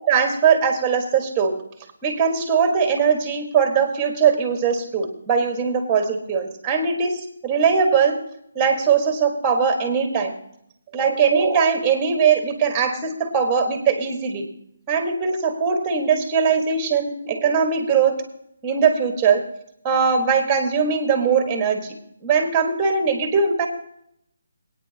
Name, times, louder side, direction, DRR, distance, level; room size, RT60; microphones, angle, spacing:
voice 1, 0.1-1.6 2.0-8.2 8.5-10.3 10.9-14.5 14.9-18.1 18.6-19.5 19.8-21.9 22.2-23.7, right 6 dB, 15° right, 5 dB, 1.7 m, -20 dB
22.5 x 9.1 x 2.9 m, 0.73 s
hypercardioid pair, 160°, 0 cm